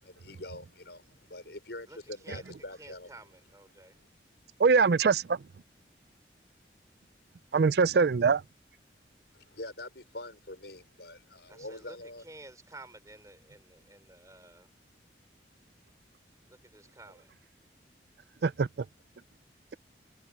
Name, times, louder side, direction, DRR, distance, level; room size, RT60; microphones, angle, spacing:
voice 1, 0.0-3.3 3.7-3.8 9.3-12.2, left 2 dB, 70° left, 5.2 m, -45 dB
voice 2, 2.2-3.9 11.5-14.7 16.5-17.3, right 2 dB, 20° right, 4.9 m, -52 dB
voice 3, 4.6-5.4 7.5-8.4 18.4-18.7, right 5 dB, 60° right, 0.4 m, -23 dB
head